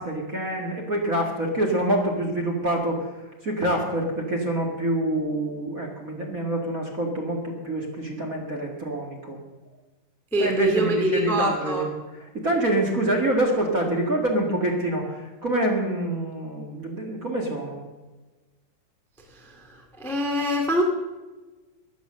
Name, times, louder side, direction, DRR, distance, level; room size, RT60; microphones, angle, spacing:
voice 1, 0.0-3.1 3.4-9.4 10.4-17.8, right 1 dB, 30° right, -1 dB, 1.9 m, -26 dB
voice 2, 10.3-11.8 20.0-20.8, right 1 dB, ahead, 2 dB, 1.2 m, -23 dB
14.5 x 10.5 x 6.4 m, 1.2 s
omnidirectional pair, 3.9 m